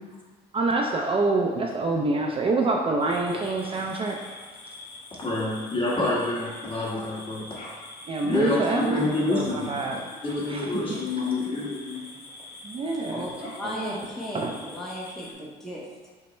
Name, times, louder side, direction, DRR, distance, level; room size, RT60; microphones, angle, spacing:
voice 1, 0.5-4.2 8.1-10.0 10.5-10.7 12.6-13.3 13.6-13.9 14.3-14.5, right 3 dB, 35° right, 0 dB, 0.4 m, -26 dB
sound 1, 3.0-15.3, left 2 dB, 65° left, 1.2 m, -43 dB
voice 2, 5.2-7.5 8.2-9.7 10.2-12.2, left 2 dB, 30° left, -6 dB, 1.4 m, -27 dB
voice 3, 13.1-15.9, left 1 dB, ahead, -5 dB, 0.8 m, -36 dB
5.3 x 2.0 x 4.2 m, 1.4 s
cardioid pair, 110°, 17 cm